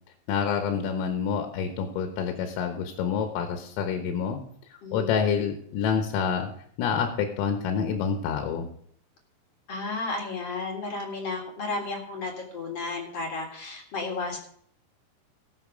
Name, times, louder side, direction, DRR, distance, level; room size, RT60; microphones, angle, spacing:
voice 1, 0.3-4.4 4.7-6.5 6.8-8.7, left 7 dB, 85° left, 4 dB, 3.8 m, -27 dB
voice 2, 4.8-5.2 9.7-14.4, left 3 dB, 55° left, 1 dB, 1.8 m, -33 dB
19.0 x 6.4 x 5.1 m, 0.65 s
omnidirectional pair, 5.8 m